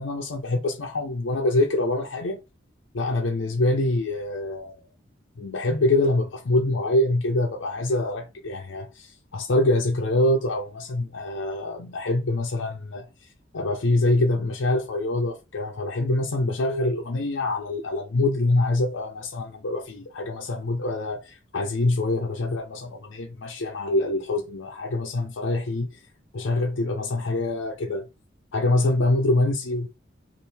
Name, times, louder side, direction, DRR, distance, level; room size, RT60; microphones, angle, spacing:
voice 1, 0.0-2.4 2.9-4.8 5.4-13.1 13.5-26.0 26.3-28.0 28.5-29.9, left 2 dB, 75° left, 0.6 m, -25 dB
4.4 x 2.5 x 3.4 m
head